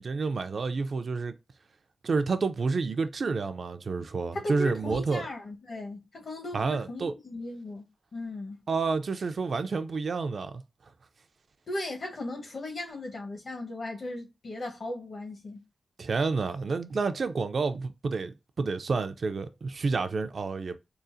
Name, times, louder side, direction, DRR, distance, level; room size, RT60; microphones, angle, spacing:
voice 1, 0.0-1.3 2.0-5.2 6.5-7.1 8.7-10.5 16.0-20.8, right 4 dB, 55° right, 0.4 m, -29 dB
voice 2, 4.3-8.6 11.7-15.6, left 1 dB, 55° left, 1.1 m, -37 dB
3.8 x 2.4 x 2.6 m
wide cardioid pair, 160°, 0 cm